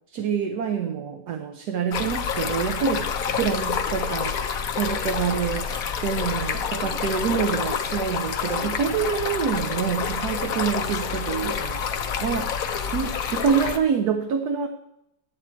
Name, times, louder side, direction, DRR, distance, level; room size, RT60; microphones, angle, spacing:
voice 1, 0.1-12.5 12.9-14.7, right 7 dB, 70° right, 5 dB, 1.3 m, -27 dB
Stream, 1.9-13.8, left 7 dB, 60° left, 1.2 m, -28 dB
12.5 x 8.1 x 4.5 m, 0.84 s
omnidirectional pair, 1.9 m